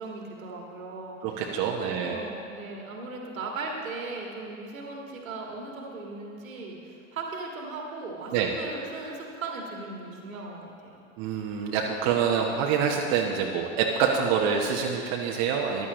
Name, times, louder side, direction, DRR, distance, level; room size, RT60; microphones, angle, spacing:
voice 1, 0.0-1.5 1.8-11.1, right 3 dB, 80° right, 0 dB, 1.9 m, -38 dB
voice 2, 1.2-2.3 8.3-8.5 11.2-15.9, right 7 dB, 50° right, 0 dB, 1.1 m, -26 dB
14.5 x 11.0 x 3.1 m, 2.6 s
hypercardioid pair, 85°, 40 cm